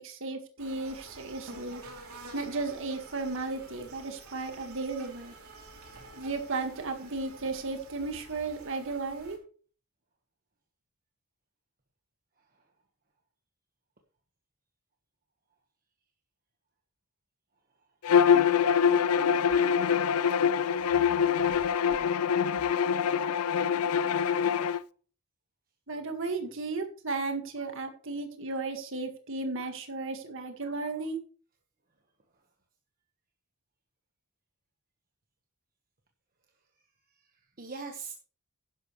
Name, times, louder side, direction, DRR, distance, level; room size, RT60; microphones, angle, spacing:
voice 1, 0.0-1.8 2.3-5.3 6.1-9.4 25.9-31.2, right 3 dB, 60° right, 5 dB, 1.8 m, -34 dB
sound 1, 0.6-9.4, right 3 dB, 75° right, 3.2 m, -49 dB
Bowed string instrument, 18.0-24.8, left 7 dB, 80° left, 0.5 m, -24 dB
voice 2, 21.7-22.1 22.6-23.2 37.1-38.1, right 4 dB, 40° right, 3 dB, 1.4 m, -45 dB
11.5 x 11.0 x 3.2 m, 0.40 s
head